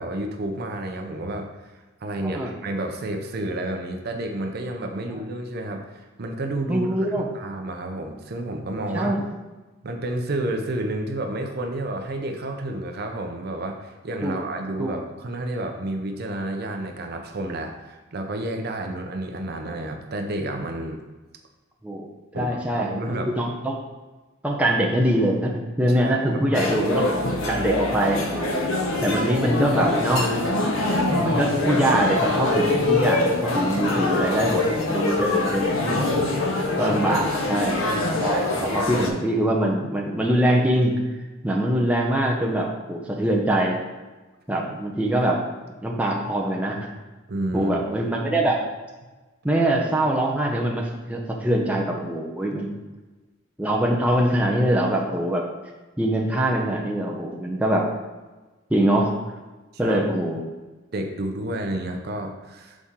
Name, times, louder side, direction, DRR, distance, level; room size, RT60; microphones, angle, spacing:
voice 1, 0.0-1.7 2.0-7.1 7.3-9.2 9.8-21.0 22.3-23.3 25.9-26.6 36.4-37.6 47.3-47.7 59.8-60.0 60.9-62.8, right 1 dB, 50° right, 4 dB, 0.6 m, -30 dB
voice 2, 6.7-7.2 8.9-9.2 14.2-14.4 14.8-14.9 21.8-22.1 22.3-22.9 23.4-23.8 24.4-28.5 29.0-30.3 31.1-36.1 36.8-40.9 41.4-43.8 44.5-45.4 45.8-46.9 47.5-48.7 49.4-52.7 53.6-55.4 56.0-57.9 58.7-59.1 59.8-60.4, right 1 dB, 5° right, -2 dB, 0.6 m, -23 dB
sound 1, 26.5-39.1, left 2 dB, 75° left, 0.8 m, -24 dB
6.1 x 4.1 x 3.7 m, 1.2 s
head